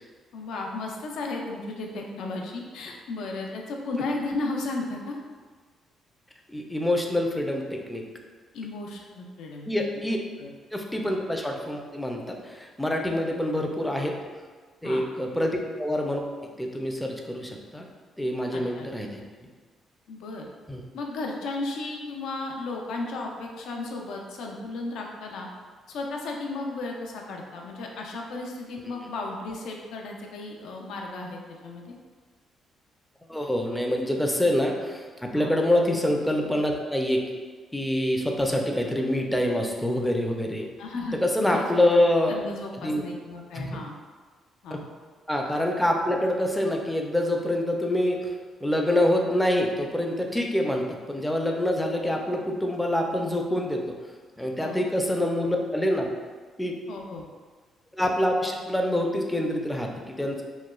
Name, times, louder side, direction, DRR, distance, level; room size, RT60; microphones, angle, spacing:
voice 1, 0.3-5.2 8.5-9.7 10.4-10.5 13.1-13.3 14.8-15.0 18.5-18.9 20.1-20.5 20.9-25.5 25.9-31.9 35.3-35.5 40.8-41.8 42.3-43.9 44.6-44.8 54.6-54.8 56.9-57.2, left 2 dB, 80° left, 0 dB, 0.4 m, -34 dB
voice 2, 6.5-8.0 9.7-10.2 10.7-14.2 14.8-16.2 16.6-17.9 18.2-19.2 20.7-20.8 33.3-37.2 37.7-40.7 41.1-42.3 42.8-43.0 43.5-43.8 45.3-48.3 48.6-53.8 54.4-56.1 56.6-56.8 58.0-60.4, left 1 dB, 5° left, 1 dB, 0.3 m, -26 dB
3.0 x 2.2 x 2.2 m, 1.5 s
cardioid pair, 90°, 0 cm